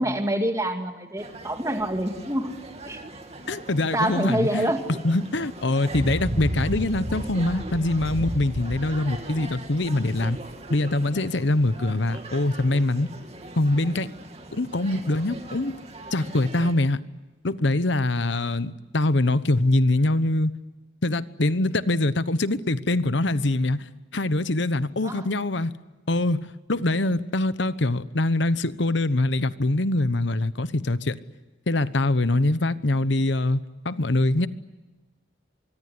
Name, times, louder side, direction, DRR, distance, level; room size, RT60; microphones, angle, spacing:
voice 1, 0.0-2.5 2.9-3.0 3.9-4.8 25.0-25.3, right 1 dB, 15° right, 5 dB, 2.3 m, -26 dB
sound 1, 1.2-16.7, right 1 dB, 35° right, 2.7 m, -36 dB
voice 2, 3.5-4.7 5.0-10.4 10.7-13.1 13.6-14.1 14.5-15.8 16.1-17.0 17.4-20.5 21.0-25.7 26.1-31.2 31.7-34.5, left 2 dB, 70° left, 14 dB, 1.0 m, -24 dB
25.0 x 23.5 x 9.6 m, 1.2 s
head